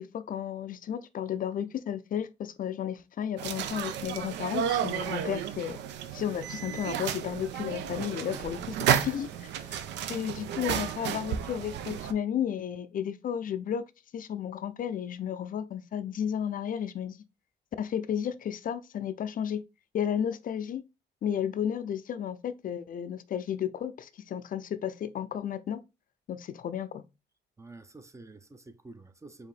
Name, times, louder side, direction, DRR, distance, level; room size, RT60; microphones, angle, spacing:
voice 1, 0.0-5.8 6.1-8.6 8.9-9.8 10.1-13.8 14.1-17.2 17.8-19.6 19.9-20.8 21.2-25.8 26.3-27.0, left 9 dB, 50° left, 0.4 m, -33 dB
sound 1, 3.4-12.1, right 9 dB, 90° right, 0.4 m, -32 dB
voice 2, 8.1-8.4 27.6-29.5, right 3 dB, 15° right, 0.4 m, -48 dB
4.7 x 2.7 x 3.2 m
cardioid pair, 85°, 18 cm